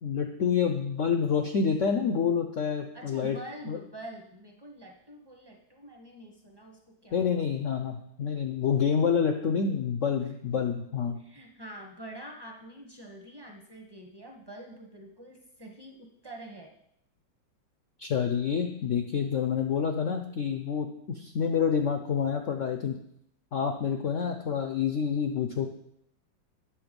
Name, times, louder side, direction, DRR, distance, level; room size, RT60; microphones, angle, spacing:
voice 1, 0.0-3.4 3.7-3.8 7.1-11.2 18.0-23.0 23.5-25.7, left 6 dB, 80° left, 6 dB, 0.7 m, -28 dB
voice 2, 2.9-7.3 11.2-16.7, right 1 dB, 25° right, 2 dB, 0.5 m, -46 dB
8.9 x 7.0 x 5.2 m, 0.75 s
omnidirectional pair, 2.1 m